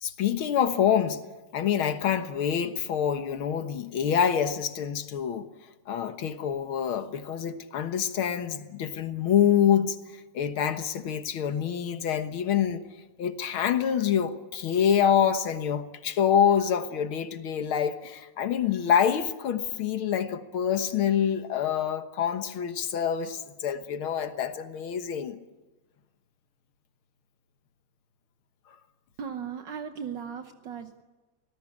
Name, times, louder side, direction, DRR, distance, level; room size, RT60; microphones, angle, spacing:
voice 1, 0.0-1.2 1.5-5.5 5.9-12.8 13.2-25.4, left 8 dB, 55° left, 1.7 m, -26 dB
voice 2, 29.2-31.0, right 7 dB, 70° right, 1.1 m, -37 dB
26.5 x 19.0 x 8.5 m
omnidirectional pair, 3.3 m